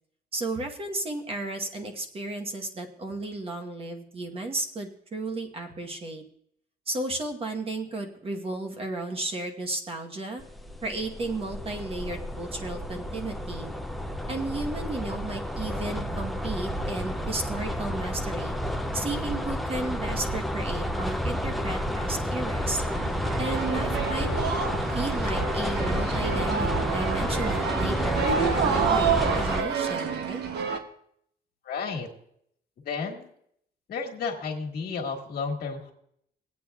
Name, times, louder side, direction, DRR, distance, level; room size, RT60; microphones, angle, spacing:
voice 1, 0.3-6.2 6.9-10.4 10.8-13.7 14.3-18.5 18.9-22.8 23.4-24.3 24.9-30.4, right 2 dB, 35° right, 3 dB, 1.1 m, -33 dB
sound 1, 10.4-29.6, equal, ahead, 0.4 m, -30 dB
sound 2, 22.8-30.8, right 6 dB, 90° right, 1.0 m, -29 dB
voice 2, 31.6-32.1 32.8-33.3 33.9-35.9, left 5 dB, 70° left, 1 dB, 1.7 m, -32 dB
21.0 x 8.5 x 2.3 m, 0.70 s
cardioid pair, 165°, 17 cm